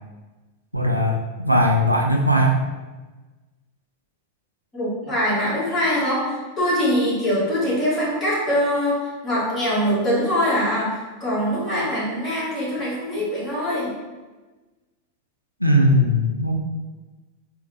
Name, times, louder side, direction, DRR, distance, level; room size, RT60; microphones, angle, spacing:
voice 1, 0.7-2.7 15.6-16.5, equal, 90° right, 2 dB, 0.4 m, -19 dB
voice 2, 4.7-13.9, equal, 20° left, -8 dB, 1.4 m, -23 dB
3.7 x 2.1 x 2.8 m, 1.2 s
figure-of-eight pair, 90°, 0 cm